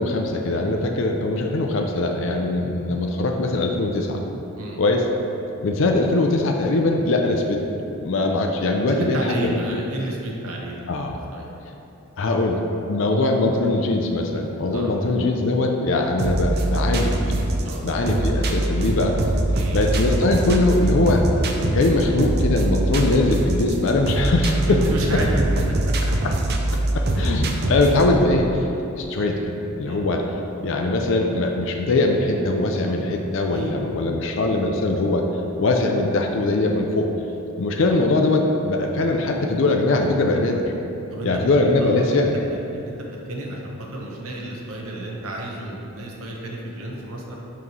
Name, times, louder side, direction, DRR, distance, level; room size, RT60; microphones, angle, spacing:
voice 1, 0.0-4.2 4.8-5.0 5.6-7.6 8.0-9.2 9.4-9.8 10.9-11.2 12.2-12.6 12.9-17.3 17.8-19.1 19.7-24.8 25.1-25.2 26.9-28.6 29.0-30.2 30.6-35.2 35.6-37.1 37.6-40.6 41.2-42.4, left 2 dB, 60° left, 2 dB, 0.4 m, -21 dB
voice 2, 8.9-11.5 14.7-14.9 17.6-17.9 19.5-19.8 24.6-26.1 27.6-27.8 29.9-30.0 33.5-34.1 40.4-40.5 41.1-41.3 41.6-42.9 43.2-47.4, right 1 dB, 70° right, -2 dB, 0.9 m, -31 dB
sound 1, 16.2-28.2, right 1 dB, 45° right, 0.4 m, -23 dB
5.8 x 3.1 x 5.3 m, 2.9 s
head